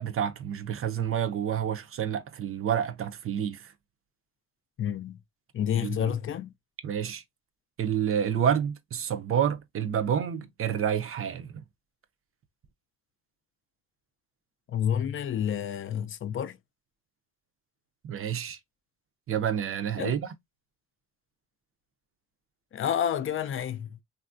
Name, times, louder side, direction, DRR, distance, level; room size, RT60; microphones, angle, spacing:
voice 1, 0.0-3.7 5.8-6.1 6.8-7.2 7.8-11.6 18.0-18.6 19.3-20.3, right 8 dB, 45° right, 0.5 m, -29 dB
voice 2, 4.8-5.2 5.5-6.5 14.7-16.6 20.0-20.2 22.7-24.0, left 9 dB, 45° left, 0.4 m, -29 dB
3.2 x 2.4 x 2.4 m
cardioid pair, 90°, 30 cm